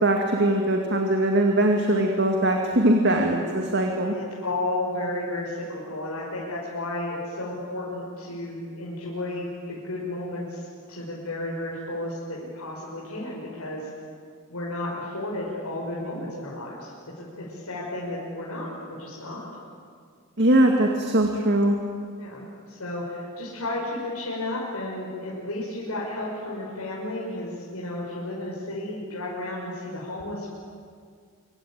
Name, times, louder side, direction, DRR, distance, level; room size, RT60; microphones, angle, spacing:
voice 1, 0.0-4.1 20.4-21.8, right 1 dB, 50° right, 2 dB, 2.3 m, -21 dB
voice 2, 4.1-13.9 14.5-19.4 22.2-30.5, left 1 dB, 90° left, -5 dB, 6.0 m, -33 dB
26.0 x 25.0 x 9.0 m, 2.1 s
head